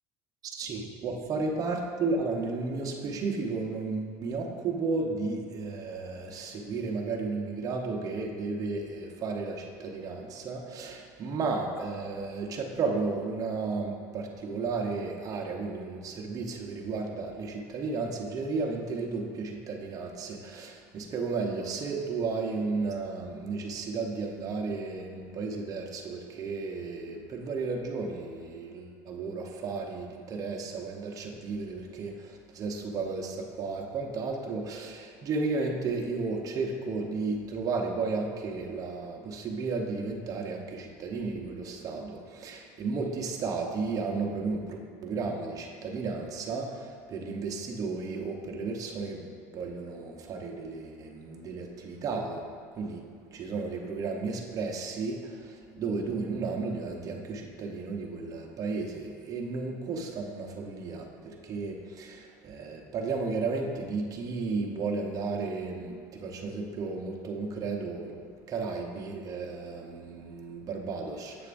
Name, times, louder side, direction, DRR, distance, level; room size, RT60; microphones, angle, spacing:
voice 1, 0.5-52.4 52.8-53.0 53.3-68.2 68.5-71.5, right 4 dB, 40° right, 1 dB, 0.8 m, -33 dB
7.8 x 6.4 x 2.6 m, 2.2 s
supercardioid pair, 105°, 10 cm